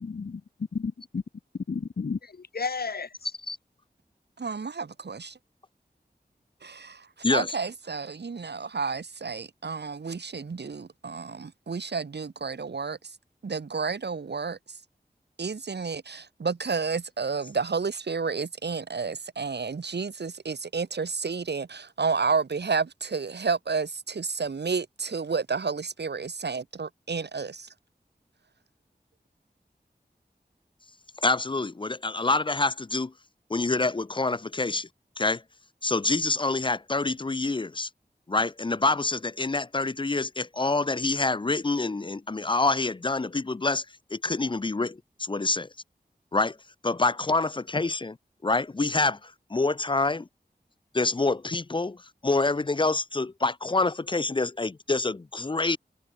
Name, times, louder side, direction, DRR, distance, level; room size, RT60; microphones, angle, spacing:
voice 1, 0.0-0.4 0.7-1.2 1.7-3.3, left 5 dB, 65° left, 0.8 m, -32 dB
voice 2, 4.4-5.4 6.6-13.1 13.4-14.8 15.4-27.7, right 5 dB, 85° right, 1.1 m, -31 dB
voice 3, 31.2-33.1 33.5-34.9 35.2-35.4 35.8-37.9 38.3-43.9 44.1-45.7 46.3-46.6 46.8-48.2 48.4-50.3 50.9-52.0 52.2-55.8, left 3 dB, 30° left, 0.4 m, -26 dB
wide cardioid pair, 65°, 17 cm